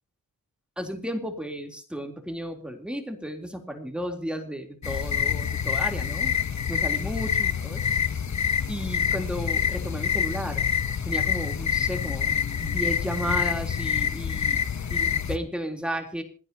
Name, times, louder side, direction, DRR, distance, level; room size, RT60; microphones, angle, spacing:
voice 1, 0.8-6.3 6.7-7.9 8.7-10.6 11.0-14.6 14.9-16.2, equal, 5° right, 4 dB, 3.5 m, -33 dB
sound 1, 4.8-15.4, left 8 dB, 60° left, 1.1 m, -26 dB
27.0 x 9.9 x 2.9 m, 0.38 s
wide cardioid pair, 90°, 32 cm